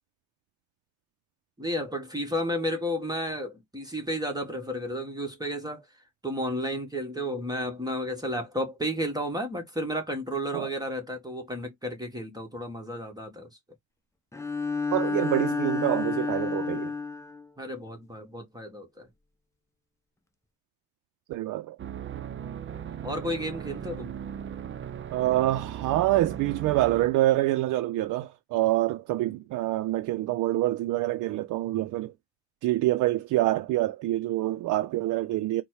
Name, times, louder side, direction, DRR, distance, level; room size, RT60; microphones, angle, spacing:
voice 1, 1.6-5.8 6.2-13.5 17.6-19.1 23.0-24.2, equal, 15° right, 1.3 m, -32 dB
Bowed string instrument, 14.3-17.5, left 4 dB, 10° left, 0.8 m, -30 dB
voice 2, 14.9-16.9 21.3-21.8 25.1-32.1 32.6-35.6, right 16 dB, 85° right, 0.5 m, -26 dB
sound 1, 21.8-27.2, right 9 dB, 40° right, 0.6 m, -38 dB
4.1 x 2.2 x 4.6 m
cardioid pair, 90°, 30 cm